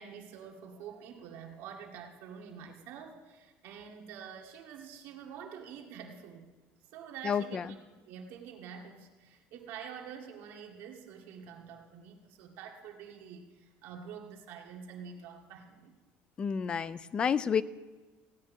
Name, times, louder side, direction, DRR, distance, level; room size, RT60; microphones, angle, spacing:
voice 1, 0.0-6.5 6.9-7.8 8.1-16.0, right 7 dB, 55° right, 1 dB, 2.0 m, -47 dB
voice 2, 7.2-7.7 16.4-17.6, left 7 dB, 20° left, 17 dB, 0.4 m, -30 dB
16.0 x 5.9 x 9.4 m, 1.3 s
cardioid pair, 180°, 5 cm